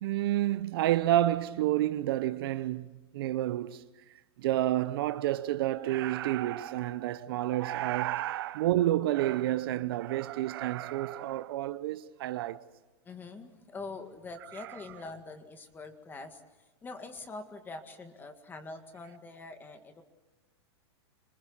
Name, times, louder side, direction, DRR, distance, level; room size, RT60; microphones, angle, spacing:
voice 1, 0.0-3.8 4.4-12.6 14.5-14.7, right 14 dB, 60° right, 0.8 m, -29 dB
voice 2, 13.0-16.4 16.8-20.0, left 3 dB, 15° left, 1.9 m, -44 dB
26.0 x 20.0 x 7.3 m
supercardioid pair, 150°, 14 cm